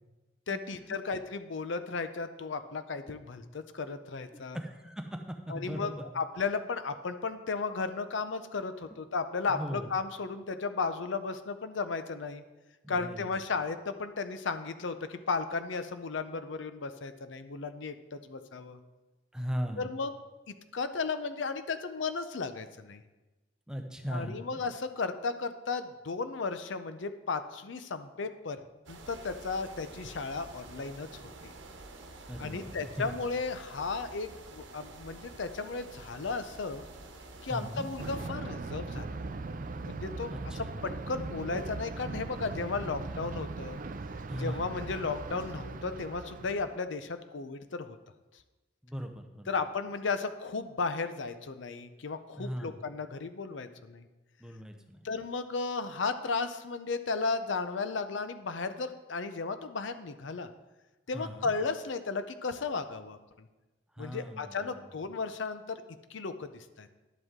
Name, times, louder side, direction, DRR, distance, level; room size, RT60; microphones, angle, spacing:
voice 1, 0.5-4.6 5.5-12.4 12.9-18.8 19.8-20.1 20.5-23.0 24.1-28.6 28.9-31.1 31.4-31.5 32.4-36.8 37.4-39.2 39.8-43.8 44.4-48.0 49.5-54.1 55.0-60.5 61.1-63.5 64.0-65.8 66.1-66.9, left 4 dB, 75° left, 10 dB, 0.6 m, -35 dB
voice 2, 4.5-5.2 5.5-6.0 9.5-9.9 12.8-13.3 19.3-19.9 23.7-24.4 32.3-33.1 37.5-37.9 40.3-40.7 44.3-44.7 48.8-49.5 52.4-52.8 54.4-55.0 61.1-61.5 63.9-64.9, equal, 5° right, 4 dB, 0.7 m, -38 dB
sound 1, 28.9-38.3, right 2 dB, 80° right, 1.0 m, -49 dB
Thunder, 38.0-46.8, right 3 dB, 45° right, 0.4 m, -39 dB
11.0 x 8.0 x 3.7 m, 1.1 s
head